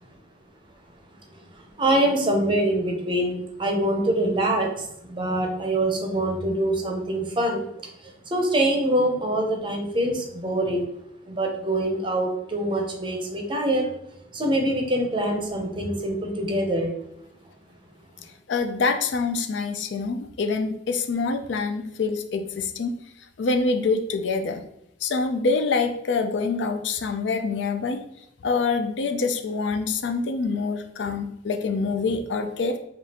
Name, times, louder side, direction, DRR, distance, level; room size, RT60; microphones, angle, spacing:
voice 1, 1.8-7.6 8.3-10.9 11.3-13.9 14.3-16.9, right 1 dB, 25° right, 2 dB, 0.6 m, -24 dB
voice 2, 18.5-23.0 23.4-24.6 25.0-28.0 28.4-32.8, left 4 dB, 65° left, 6 dB, 0.4 m, -25 dB
5.0 x 2.4 x 2.8 m, 0.81 s
head